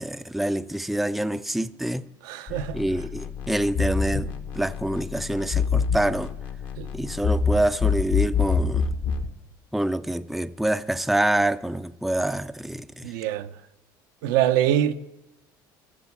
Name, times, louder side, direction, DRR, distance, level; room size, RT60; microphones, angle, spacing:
voice 1, 0.0-2.1 2.7-6.3 6.9-8.9 9.7-13.1, right 1 dB, ahead, 0.4 m, -26 dB
voice 2, 2.2-2.8 6.8-6.9 13.0-13.5 14.2-14.9, right 11 dB, 85° right, 0.7 m, -23 dB
sound 1, 2.5-9.3, left 5 dB, 60° left, 1.2 m, -26 dB
14.5 x 7.4 x 7.0 m
supercardioid pair, 100°, 10 cm